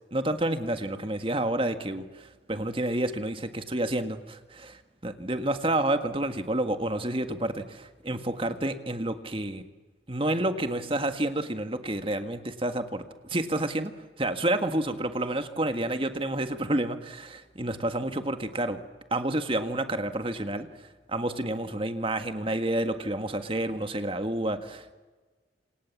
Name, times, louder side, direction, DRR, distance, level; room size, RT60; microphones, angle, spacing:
voice 1, 0.1-2.0 2.5-4.8 5.0-9.6 10.1-13.0 13.3-13.9 14.2-18.8 19.1-20.7 21.1-24.9, right 1 dB, 30° right, 8 dB, 1.8 m, -29 dB
28.0 x 27.0 x 7.4 m, 1.3 s
head